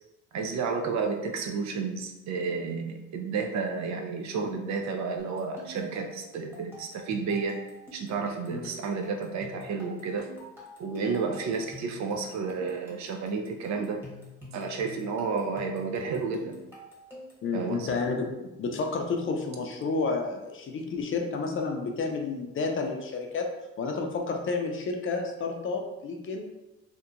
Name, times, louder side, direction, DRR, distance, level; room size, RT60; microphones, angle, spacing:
voice 1, 0.3-7.6 7.9-10.3 10.8-14.1 14.5-16.6 17.5-17.9, right 4 dB, 65° right, 4 dB, 0.5 m, -31 dB
sound 1, 5.2-17.5, right 1 dB, 5° right, 1.0 m, -47 dB
voice 2, 17.4-23.5 23.8-26.5, left 4 dB, 45° left, 3 dB, 0.5 m, -30 dB
2.8 x 2.2 x 2.4 m, 1.0 s
cardioid pair, 90°, 30 cm